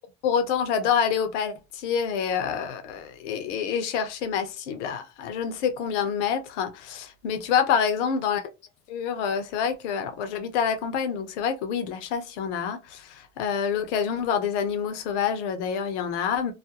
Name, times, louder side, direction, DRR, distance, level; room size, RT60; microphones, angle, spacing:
voice 1, 0.2-8.4 8.9-16.5, left 7 dB, 85° left, 0.6 m, -27 dB
2.4 x 2.1 x 2.7 m
hypercardioid pair, 70°, 35 cm